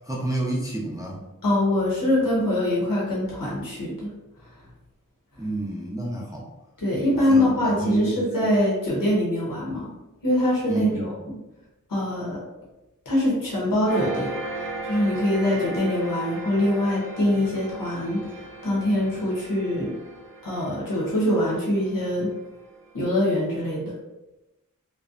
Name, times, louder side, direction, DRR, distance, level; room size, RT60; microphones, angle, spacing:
voice 1, 0.1-1.2 5.4-6.4 7.3-8.5 10.7-11.1, right 2 dB, 10° right, -3 dB, 0.4 m, -29 dB
voice 2, 1.4-4.1 6.8-9.9 10.2-11.4 11.9-12.4 13.1-14.3 14.8-19.9 20.4-22.3 22.9-23.9, left 1 dB, 90° left, -5 dB, 0.8 m, -24 dB
sound 1, 13.9-22.9, right 2 dB, 85° right, 0.5 m, -37 dB
2.5 x 2.1 x 2.4 m, 1.0 s
wide cardioid pair, 55°, 33 cm